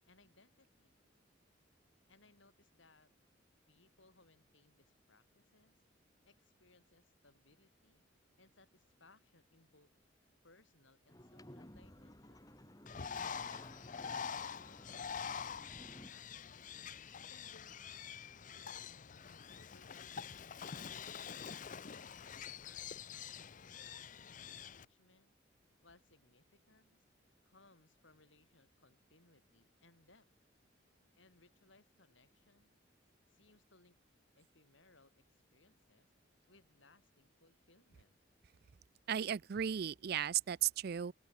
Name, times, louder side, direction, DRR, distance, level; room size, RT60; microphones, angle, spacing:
voice 1, 0.1-0.9 2.1-3.1 3.7-5.8 6.2-8.1 8.4-9.9 10.4-12.5 13.8-16.7 17.3-18.1 18.5-20.3 21.0-21.4 21.8-25.4 25.8-27.0 27.4-30.3 31.2-32.8 33.3-34.0 34.3-36.1 36.5-38.2, left 3 dB, 80° left, 5.2 m, -68 dB
sound 1, 11.1-16.1, left 1 dB, 20° left, 5.1 m, -55 dB
Bird, 12.9-24.9, left 7 dB, 45° left, 0.6 m, -46 dB
voice 2, 39.1-41.1, right 9 dB, 55° right, 0.4 m, -35 dB
open air
head